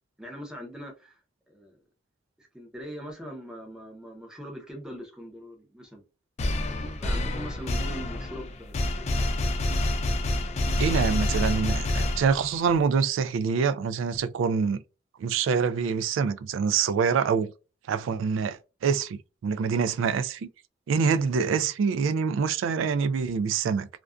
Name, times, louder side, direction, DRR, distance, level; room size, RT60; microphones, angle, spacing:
voice 1, 0.2-1.2 1.5-1.8 2.4-6.0 6.6-9.5, equal, 5° right, 0.6 m, -42 dB
sound 1, 6.4-12.7, left 1 dB, 35° left, 0.3 m, -27 dB
voice 2, 10.8-14.8 15.2-17.5 17.9-20.5 20.9-23.9, right 6 dB, 80° right, 0.3 m, -25 dB
2.4 x 2.2 x 2.3 m
head